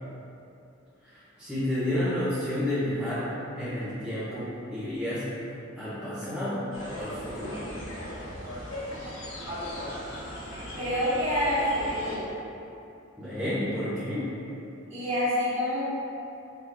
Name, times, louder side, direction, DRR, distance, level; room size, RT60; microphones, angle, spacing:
voice 1, 1.4-3.3 3.6-5.2 5.8-6.6 6.9-7.6 13.2-14.3, left 1 dB, 5° right, -15 dB, 0.9 m, -30 dB
sound 1, 6.7-12.2, equal, 85° left, 1.2 m, -37 dB
voice 2, 10.8-12.2 14.9-15.8, left 1 dB, 35° right, -12 dB, 1.4 m, -27 dB
3.8 x 3.0 x 3.4 m, 2.7 s
head